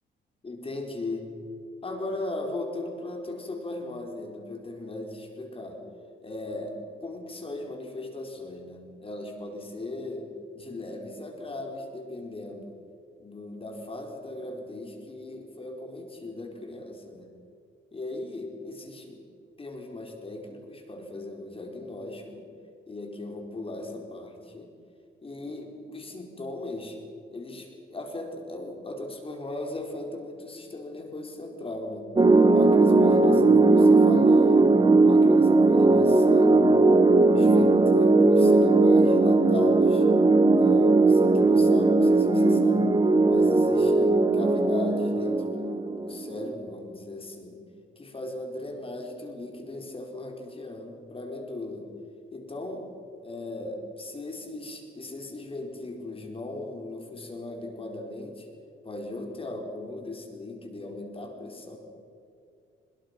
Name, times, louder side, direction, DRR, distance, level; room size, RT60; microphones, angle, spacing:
voice 1, 0.4-1.3 1.8-5.8 6.2-10.3 10.5-12.7 13.2-17.3 17.9-19.2 19.6-22.5 22.9-24.7 25.2-27.0 27.3-32.1 32.5-34.7 35.1-37.0 37.3-40.1 40.5-42.9 43.3-47.6 48.0-51.9 52.3-52.9 53.2-58.5 58.8-61.8, left 2 dB, 30° left, 2 dB, 4.4 m, -38 dB
sound 1, 32.2-46.5, right 3 dB, 25° right, 1.5 m, -19 dB
22.5 x 22.0 x 6.0 m, 2.5 s
cardioid pair, 90°, 20 cm